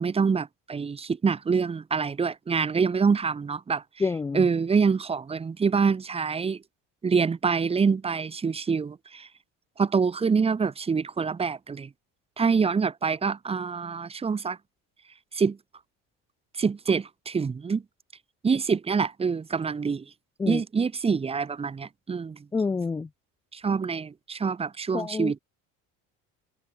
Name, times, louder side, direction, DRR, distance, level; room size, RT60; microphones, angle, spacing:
voice 1, 0.0-3.8 4.3-6.6 7.0-9.3 9.8-11.9 12.4-14.6 15.3-15.6 16.6-17.8 18.4-20.0 20.5-22.4 23.5-25.4, right 5 dB, 15° right, 1.6 m, -26 dB
voice 2, 4.0-4.5 20.4-20.6 22.5-23.1 24.9-25.4, left 4 dB, 10° left, 0.3 m, -28 dB
cardioid pair, 150°, 34 cm